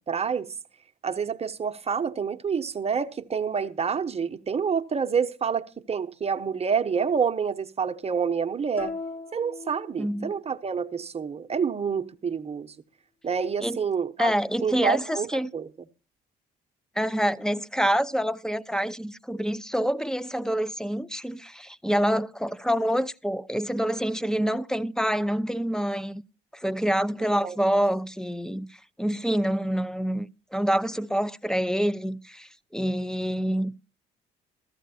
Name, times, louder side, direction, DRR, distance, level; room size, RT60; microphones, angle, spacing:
voice 1, 0.1-0.5 1.0-8.9 9.3-12.7 13.2-14.3 14.6-15.3 15.5-15.7 27.4-27.6, right 6 dB, 30° right, 0.9 m, -28 dB
sound 1, 8.8-10.6, left 4 dB, 45° left, 2.2 m, -39 dB
voice 2, 10.0-10.3 13.6-13.8 14.2-15.5 17.0-26.2 26.5-28.7 29.0-33.7, equal, 5° left, 0.5 m, -27 dB
14.5 x 13.5 x 2.7 m
supercardioid pair, 70°, 21 cm